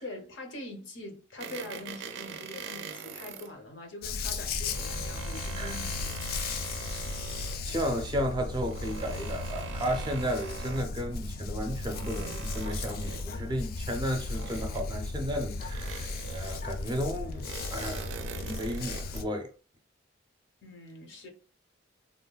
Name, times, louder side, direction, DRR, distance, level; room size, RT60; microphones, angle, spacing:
voice 1, 0.0-6.4 6.7-7.0 20.6-21.3, left 2 dB, 70° left, 0.7 m, -44 dB
sound 1, 1.4-3.5 4.4-7.7 8.6-11.0 11.6-13.4 14.2-15.1 15.7-16.8 17.3-19.3, right 6 dB, 80° right, 0.4 m, -43 dB
Dog, 4.0-19.2, left 3 dB, 50° left, 0.3 m, -36 dB
voice 2, 7.6-19.5, equal, 25° right, 0.5 m, -33 dB
3.3 x 2.2 x 2.3 m
head